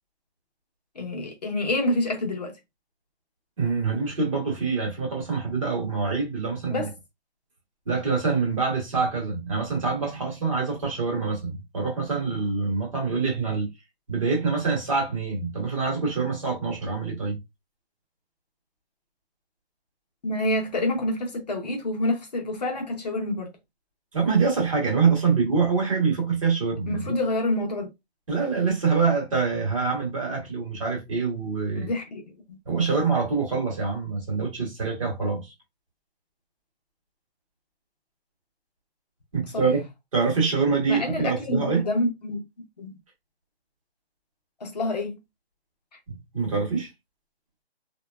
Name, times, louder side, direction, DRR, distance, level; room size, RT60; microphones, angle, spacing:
voice 1, 1.0-2.6 6.7-6.9 20.2-23.5 26.9-27.9 31.7-32.6 39.5-39.7 40.9-42.4 42.8-43.0 44.6-45.2, left 1 dB, 40° left, 0.8 m, -27 dB
voice 2, 3.6-6.8 7.9-13.7 14.1-17.4 24.1-27.2 28.3-31.9 32.7-35.5 39.3-39.9 40.1-41.9 46.1-46.9, right 4 dB, 30° right, 1.0 m, -25 dB
3.0 x 2.2 x 2.2 m
hypercardioid pair, 170°, 32 cm